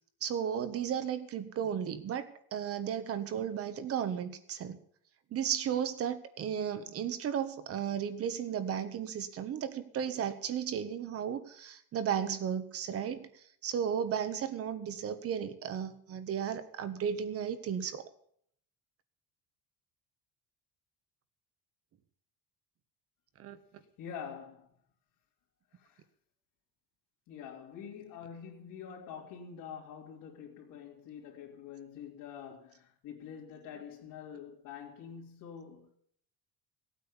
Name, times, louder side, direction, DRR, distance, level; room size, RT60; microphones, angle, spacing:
voice 1, 0.2-4.8 5.3-13.3 13.6-18.0 23.4-23.6, right 8 dB, 40° right, 1.5 m, -34 dB
voice 2, 24.0-24.7 25.7-26.0 27.3-36.0, left 7 dB, 65° left, 3.0 m, -46 dB
17.5 x 8.9 x 7.0 m
cardioid pair, 170°, 34 cm